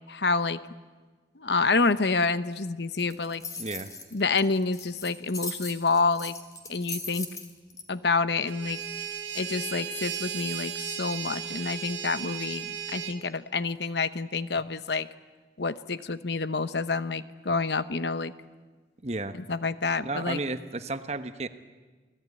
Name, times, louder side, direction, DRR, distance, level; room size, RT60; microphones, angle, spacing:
voice 1, 0.1-0.6 1.4-3.4 4.1-6.3 6.7-7.3 7.9-8.8 9.3-15.1 15.6-18.3 19.5-20.4, left 4 dB, 70° left, 13 dB, 0.9 m, -28 dB
sound 1, 3.0-7.8, left 3 dB, 20° left, 3.1 m, -38 dB
voice 2, 3.6-3.9 19.0-19.4 20.0-21.5, right 2 dB, 35° right, 10 dB, 1.1 m, -33 dB
sound 2, 8.4-13.2, right 7 dB, 85° right, 1.9 m, -35 dB
28.0 x 19.0 x 9.7 m, 1.4 s
head